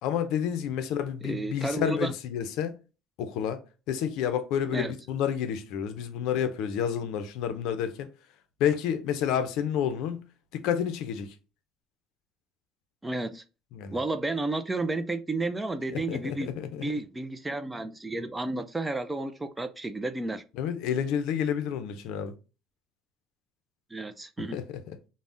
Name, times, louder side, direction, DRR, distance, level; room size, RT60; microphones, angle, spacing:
voice 1, 0.0-2.8 3.2-3.6 3.9-8.1 8.6-10.3 10.5-11.3 13.7-14.0 15.9-16.9 20.6-22.3 24.5-25.0, left 8 dB, 75° left, 0.4 m, -30 dB
voice 2, 1.2-2.1 4.7-4.9 13.0-13.4 13.9-20.4 23.9-24.6, right 2 dB, 15° right, 0.3 m, -32 dB
3.4 x 2.0 x 2.5 m
cardioid pair, 115°, 0 cm